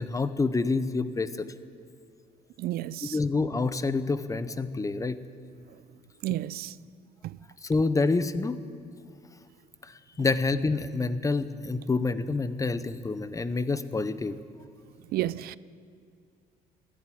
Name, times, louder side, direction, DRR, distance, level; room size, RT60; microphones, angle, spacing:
voice 1, 0.0-1.5 3.0-5.2 7.6-8.6 10.2-14.4, left 3 dB, 20° left, 0.7 m, -27 dB
voice 2, 2.6-3.2 6.2-6.7 7.2-7.4 15.1-15.6, right 14 dB, 70° right, 0.4 m, -31 dB
13.5 x 11.0 x 9.2 m
cardioid pair, 100°, 16 cm